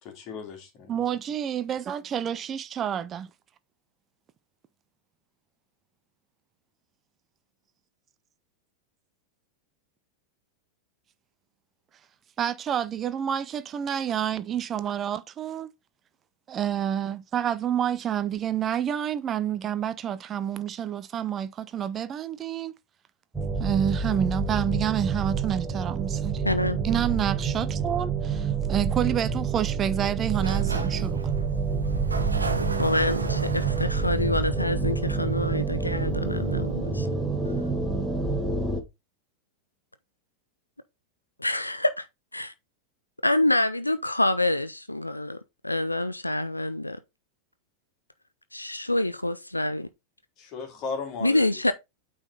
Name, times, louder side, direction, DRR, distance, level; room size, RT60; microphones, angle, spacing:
voice 1, 0.0-1.0 50.4-51.6, left 4 dB, 40° left, 2.4 m, -36 dB
voice 2, 0.9-3.3 12.4-15.7 16.5-22.7 23.6-26.4 26.8-31.2, right 9 dB, 25° right, 0.5 m, -28 dB
sound 1, 23.3-38.8, right 5 dB, 10° right, 1.5 m, -28 dB
voice 3, 26.4-26.8 32.6-37.1 41.4-42.1 42.3-42.5 43.2-47.0 48.5-49.9 51.2-51.7, left 1 dB, 85° left, 0.5 m, -26 dB
Sliding door, 30.2-35.9, right 3 dB, 80° right, 1.1 m, -35 dB
8.8 x 4.0 x 4.1 m
figure-of-eight pair, 90°, 0 cm